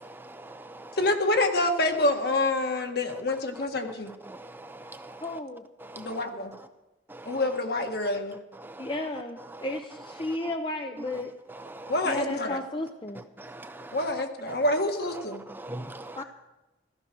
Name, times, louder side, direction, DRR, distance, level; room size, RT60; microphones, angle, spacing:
voice 1, 0.0-1.0 4.2-5.2 5.8-6.1 7.1-7.4 8.6-8.9 9.5-9.7 11.6-12.0 13.4-14.1 14.5-14.6 15.5-16.2, right 1 dB, 10° right, 0.6 m, -42 dB
voice 2, 1.0-4.1 6.0-6.5 7.3-8.4 11.9-12.6 13.9-15.4, left 2 dB, 55° left, 1.7 m, -27 dB
voice 3, 5.2-5.6 8.8-11.3 12.0-13.2 16.2-16.3, left 2 dB, 25° left, 0.7 m, -33 dB
15.0 x 14.5 x 6.2 m
head